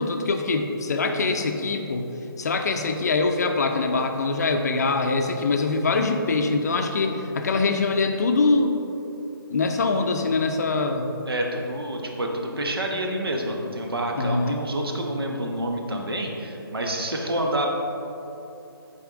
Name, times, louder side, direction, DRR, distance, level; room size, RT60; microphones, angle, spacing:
voice 1, 0.0-2.1 2.4-8.8 9.5-11.1 14.1-14.6, left 3 dB, 45° left, 5 dB, 0.5 m, -23 dB
voice 2, 11.2-17.7, right 1 dB, 75° right, 1 dB, 1.1 m, -28 dB
8.8 x 4.2 x 3.7 m, 2.9 s
figure-of-eight pair, 155°, 13 cm